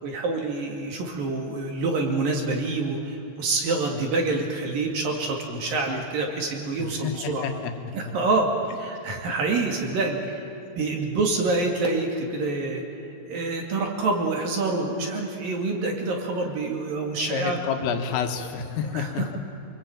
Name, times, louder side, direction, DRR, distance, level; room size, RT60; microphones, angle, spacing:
voice 1, 0.0-7.5 7.9-10.4 10.8-12.8 13.3-17.7 18.9-19.3, right 3 dB, 50° right, 2 dB, 3.6 m, -27 dB
voice 2, 6.8-7.7 8.0-8.1 17.2-19.4, left 7 dB, 90° left, 6 dB, 4.2 m, -29 dB
27.5 x 22.0 x 9.0 m, 3.0 s
omnidirectional pair, 5.8 m